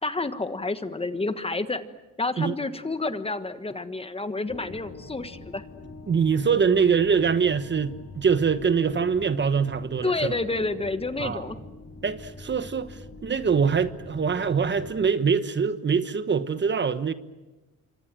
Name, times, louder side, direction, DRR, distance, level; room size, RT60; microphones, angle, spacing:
voice 1, 0.0-1.8 2.2-5.6 10.0-11.6, left 3 dB, 20° left, 1.5 m, -29 dB
sound 1, 4.5-15.1, left 2 dB, 45° left, 6.7 m, -44 dB
voice 2, 6.1-10.3 11.2-11.5 12.0-17.1, right 6 dB, 35° right, 1.3 m, -24 dB
27.5 x 25.0 x 7.7 m
cardioid pair, 90°, 30 cm